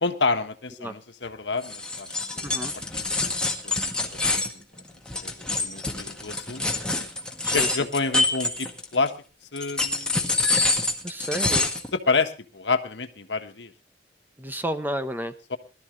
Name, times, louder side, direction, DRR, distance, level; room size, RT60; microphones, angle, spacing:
voice 1, 0.0-2.1 2.3-2.6 2.9-3.0 3.6-3.9 4.3-4.4 5.2-5.3 5.6-6.6 7.5-9.1 9.5-10.2 11.9-13.7 15.5-15.6, left 4 dB, 80° left, 7 dB, 1.4 m, -28 dB
sound 1, 1.6-9.1 9.6-11.9, left 2 dB, 5° left, 1.8 m, -26 dB
voice 2, 2.4-2.7 7.4-7.9 11.0-11.7 14.4-15.3, right 1 dB, 10° right, 9 dB, 0.9 m, -31 dB
21.0 x 13.0 x 3.2 m, 0.32 s
head